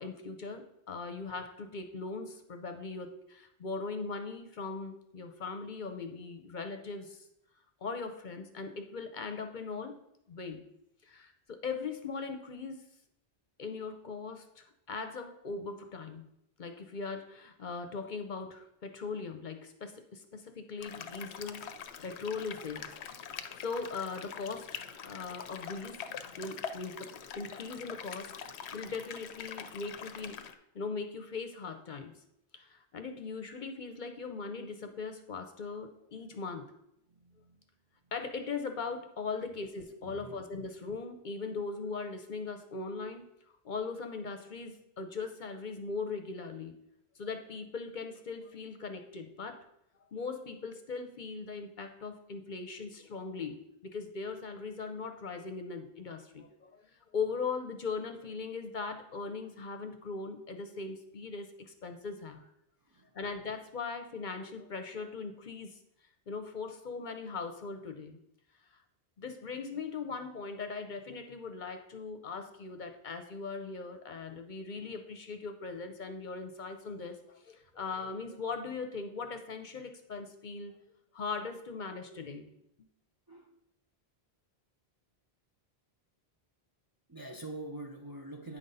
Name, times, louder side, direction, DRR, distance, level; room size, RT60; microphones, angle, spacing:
voice 1, 0.0-7.3 7.8-10.0 10.3-10.6 11.1-12.8 13.6-16.3 16.6-22.9 23.6-26.0 26.4-28.3 28.7-30.4 30.7-32.2 32.5-36.7 38.1-43.2 43.6-46.8 47.2-49.7 50.1-56.9 57.1-62.5 63.1-65.8 66.3-68.2 69.2-80.7 81.1-82.5, left 4 dB, 55° left, 7 dB, 0.8 m, -40 dB
sound 1, 20.8-30.5, left 7 dB, 85° left, 0.9 m, -44 dB
voice 2, 37.2-37.6 40.0-40.4 62.9-63.1 83.3-83.6 87.1-88.6, right 2 dB, 30° right, 1 dB, 0.5 m, -45 dB
9.2 x 3.9 x 5.4 m, 0.78 s
omnidirectional pair, 1.1 m